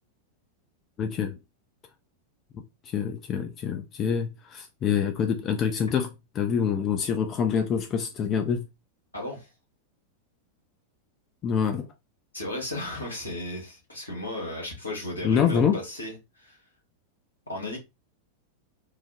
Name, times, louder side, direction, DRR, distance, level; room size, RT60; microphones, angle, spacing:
voice 1, 1.0-1.4 2.5-6.1 6.3-8.6 11.4-11.9 15.2-15.8, left 7 dB, 30° left, 0.3 m, -26 dB
voice 2, 9.1-9.5 12.3-16.6 17.5-17.8, left 1 dB, 80° left, 1.2 m, -35 dB
3.1 x 2.0 x 2.3 m
figure-of-eight pair, 90°, 0 cm